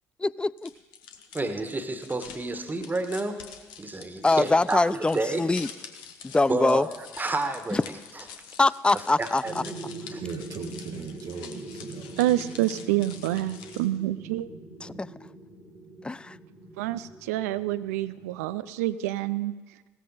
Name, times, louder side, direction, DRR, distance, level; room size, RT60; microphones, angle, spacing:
voice 1, 0.2-0.7 4.2-5.7 6.2-6.9 7.7-7.8 8.6-9.6 14.8-15.1 16.0-16.4, left 3 dB, 10° left, 22 dB, 0.3 m, -23 dB
sound 1, 0.6-14.0, left 7 dB, 65° left, 1.2 m, -46 dB
voice 2, 1.3-3.4 3.8-5.4 6.5-6.9 7.2-8.2 8.9-9.5 10.1-10.2, right 2 dB, 20° right, 8 dB, 1.7 m, -30 dB
sound 2, 9.4-18.5, right 2 dB, 90° left, 3.9 m, -43 dB
voice 3, 10.2-12.2, right 6 dB, 50° right, 1 dB, 1.2 m, -38 dB
voice 4, 12.2-14.5 16.8-19.5, right 14 dB, 75° right, 15 dB, 0.5 m, -27 dB
16.5 x 14.0 x 4.2 m, 1.3 s
figure-of-eight pair, 50°, 8 cm